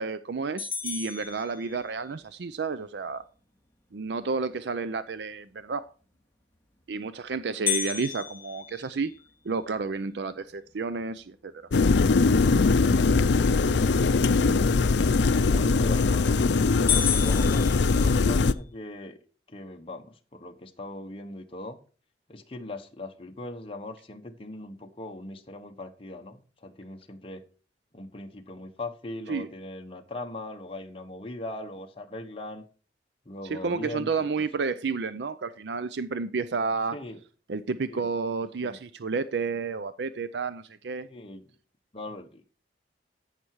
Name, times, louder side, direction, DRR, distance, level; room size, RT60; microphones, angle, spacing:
voice 1, 0.0-3.2 3.9-5.9 6.9-9.1 9.4-11.5 29.3-29.5 33.4-37.0 37.5-41.1, right 4 dB, 65° right, 14 dB, 0.5 m, -31 dB
sound 1, 0.6-2.2 7.7-9.8 10.3-10.4 10.9-11.0 11.7-12.0 15.6-16.0 16.4-16.5 16.9-18.6, left 9 dB, 15° left, 2.2 m, -32 dB
sound 2, 11.7-18.5, left 4 dB, 75° left, 0.5 m, -21 dB
voice 2, 15.4-16.4 17.1-19.2 19.5-21.8 22.3-27.4 27.9-32.6 33.3-34.4 36.9-37.2 37.9-38.1 38.6-38.8 41.0-41.5 41.9-42.5, left 2 dB, 30° left, 3 dB, 1.1 m, -40 dB
15.0 x 5.9 x 4.7 m, 0.39 s
head